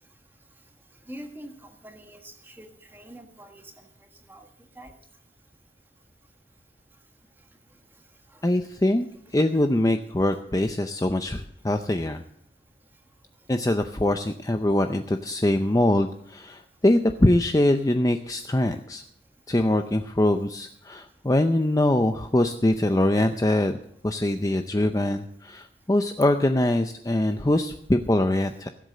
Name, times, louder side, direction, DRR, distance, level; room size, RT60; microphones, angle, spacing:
voice 1, 1.1-1.5 1.8-2.7 2.9-3.6 4.3-4.5 4.8-4.9, equal, 10° right, 5 dB, 1.5 m, -43 dB
voice 2, 8.4-9.1 9.3-12.2 13.5-19.0 19.5-23.8 24.0-28.7, left 1 dB, 15° left, 7 dB, 0.5 m, -23 dB
16.5 x 8.0 x 6.6 m, 0.68 s
head